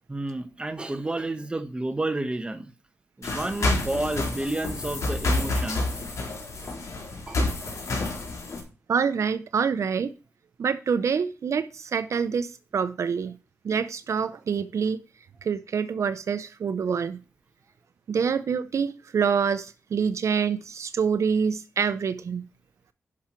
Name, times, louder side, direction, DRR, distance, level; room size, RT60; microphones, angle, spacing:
voice 1, 0.1-2.7 3.2-5.9 7.3-7.4, right 2 dB, 20° right, 1.2 m, -30 dB
sound 1, 3.2-8.6, left 2 dB, 75° left, 3.9 m, -28 dB
voice 2, 8.9-10.1 10.6-13.4 13.6-15.0 15.4-17.2 18.1-22.4, right 6 dB, 70° right, 0.6 m, -26 dB
11.0 x 5.8 x 4.4 m
wide cardioid pair, 120°, 5 cm